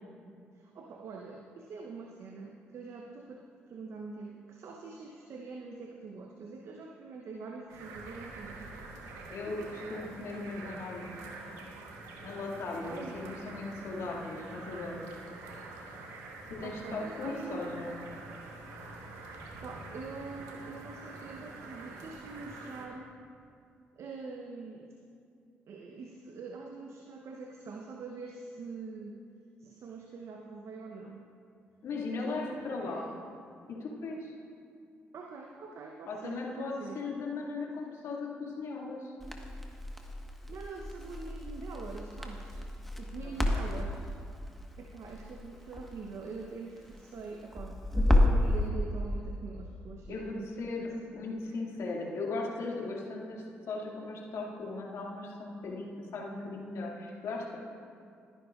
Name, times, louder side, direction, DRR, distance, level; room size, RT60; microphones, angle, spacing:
voice 1, 0.5-8.8 12.9-13.2 16.6-17.8 19.6-23.1 24.0-25.0 25.7-29.2 29.6-31.3 31.9-33.1 35.1-37.0 40.5-42.6 43.0-44.1 44.8-50.5 50.8-51.0 51.4-51.6 51.9-52.0, right 4 dB, 60° right, 1 dB, 0.8 m, -44 dB
sound 1, 7.7-22.9, right 3 dB, 80° right, 1.2 m, -46 dB
voice 2, 9.3-11.1 12.2-15.0 16.5-18.0 31.8-33.1 33.7-34.3 36.1-39.1 43.2-43.7 50.1-57.6, left 3 dB, 65° left, -2 dB, 2.2 m, -38 dB
Crackle, 39.2-48.5, left 1 dB, 5° left, 1.3 m, -31 dB
20.5 x 10.5 x 2.5 m, 2.4 s
hypercardioid pair, 50°, 5 cm